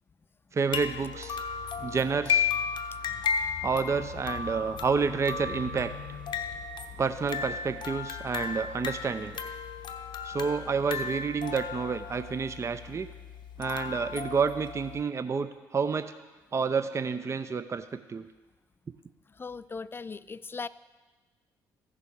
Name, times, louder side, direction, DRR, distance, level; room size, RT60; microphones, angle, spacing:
voice 1, 0.5-1.4 1.8-2.5 3.6-5.9 7.0-9.4 10.2-13.1 13.6-16.1 16.5-18.2, right 5 dB, 30° right, 10 dB, 0.5 m, -29 dB
sound 1, 0.7-15.0, left 6 dB, 55° left, 0.7 m, -34 dB
voice 2, 19.3-20.7, left 4 dB, 25° left, 17 dB, 0.4 m, -39 dB
14.5 x 6.7 x 3.7 m, 1.2 s
hypercardioid pair, 45°, 10 cm